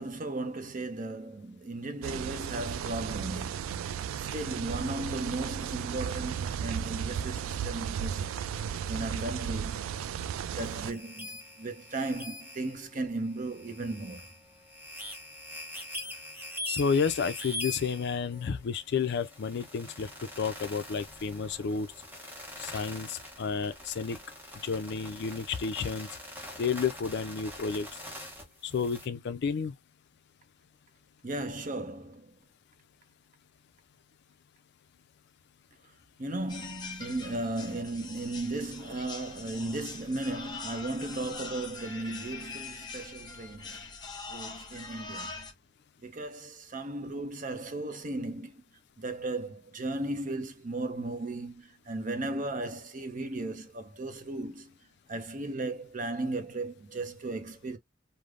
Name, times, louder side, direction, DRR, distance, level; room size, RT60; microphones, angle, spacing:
voice 1, 0.0-8.3 8.9-9.8 10.5-14.3 31.2-32.3 36.2-43.8 44.3-45.5 46.0-48.6 49.0-54.7 55.1-57.8, right 2 dB, 40° right, 0.6 m, -36 dB
sound 1, 2.0-10.9, right 8 dB, 85° right, 0.3 m, -35 dB
sound 2, 10.6-29.1, left 1 dB, 10° right, 0.8 m, -43 dB
voice 2, 16.7-21.9 22.6-24.2 24.6-26.1 26.6-27.9 28.6-29.7, left 5 dB, 60° left, 0.4 m, -31 dB
sound 3, 36.5-45.5, left 4 dB, 20° left, 0.7 m, -43 dB
3.3 x 2.0 x 2.4 m
head